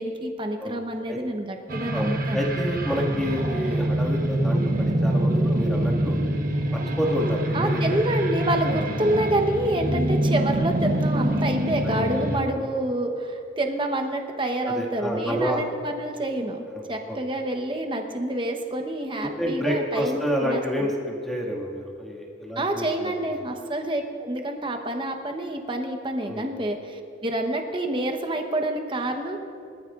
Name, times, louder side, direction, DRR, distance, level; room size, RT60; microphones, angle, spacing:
voice 1, 0.0-2.4 7.5-20.9 22.6-29.4, right 1 dB, 25° right, 4 dB, 1.0 m, -28 dB
sound 1, 1.7-12.4, right 1 dB, 45° right, 1.1 m, -25 dB
voice 2, 1.9-6.2 6.7-8.0 8.6-8.9 11.8-12.2 12.5-12.7 14.7-15.7 16.7-16.8 17.1-17.2 19.2-23.4 26.3-26.5, equal, ahead, -3 dB, 1.9 m, -29 dB
23.5 x 13.5 x 2.5 m, 2.5 s
head